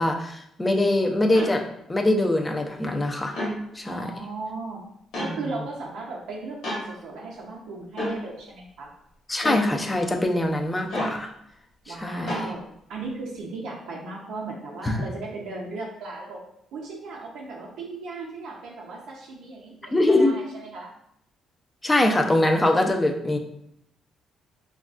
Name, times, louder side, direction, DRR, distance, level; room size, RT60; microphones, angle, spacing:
voice 1, 0.0-1.6 1.9-3.3 3.7-4.1 5.2-5.3 9.3-11.3 11.9-12.4 14.8-15.0 19.9-20.3 21.8-23.4, left 1 dB, 15° left, 2 dB, 0.4 m, -23 dB
sound 1, 1.3-1.5 3.3-3.6 5.1-5.3 6.6-6.8 8.0-8.2 9.4-9.7 10.9-11.2 12.3-12.5, left 1 dB, 75° left, 1.0 m, -29 dB
voice 2, 3.8-4.8 5.2-8.9 11.9-16.4 16.7-20.9, right 3 dB, 85° right, -2 dB, 0.5 m, -36 dB
3.4 x 2.2 x 2.4 m, 0.75 s
cardioid pair, 90°, 0 cm